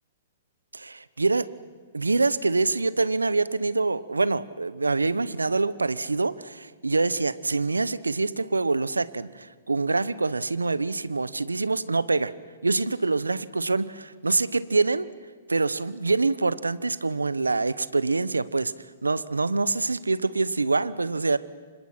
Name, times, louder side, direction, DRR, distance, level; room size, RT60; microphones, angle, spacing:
voice 1, 0.7-1.5 1.9-12.3 12.6-15.1 15.5-18.7 19.0-21.4, right 3 dB, 90° right, 17 dB, 0.9 m, -25 dB
30.0 x 26.0 x 6.0 m, 1.5 s
figure-of-eight pair, 115°, 0 cm